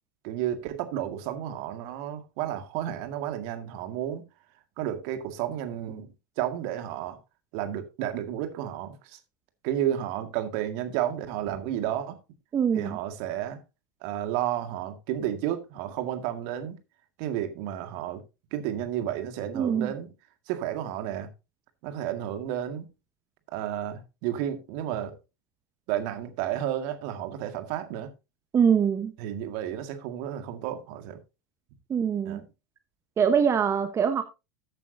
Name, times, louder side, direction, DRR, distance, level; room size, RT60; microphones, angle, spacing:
voice 1, 0.2-4.2 4.8-7.2 7.5-9.2 9.6-12.2 12.7-13.6 14.0-16.8 17.2-18.2 18.5-20.1 20.5-21.3 21.8-22.9 23.5-25.2 25.9-28.1 29.2-31.2 32.3-32.4, right 11 dB, 55° right, 2.0 m, -32 dB
voice 2, 12.5-13.0 19.5-19.9 28.5-29.1 31.9-32.4 33.2-34.2, right 7 dB, 30° right, 1.1 m, -23 dB
14.0 x 8.9 x 2.7 m
hypercardioid pair, 80°, 10 cm